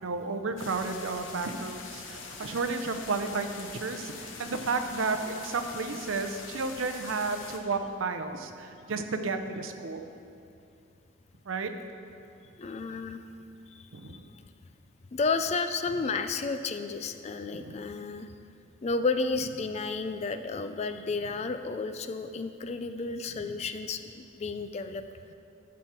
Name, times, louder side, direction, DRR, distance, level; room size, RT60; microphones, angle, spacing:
voice 1, 0.0-10.1 11.5-11.7 13.9-14.3 17.5-17.8, right 4 dB, 80° right, 7 dB, 0.6 m, -32 dB
sound 1, 0.6-7.6, left 4 dB, 70° left, 0.9 m, -44 dB
voice 2, 12.6-13.2 13.7-13.9 14.1-14.2 15.1-18.3 18.8-25.0, left 4 dB, 30° left, 9 dB, 0.3 m, -32 dB
12.0 x 6.2 x 4.4 m, 2.6 s
head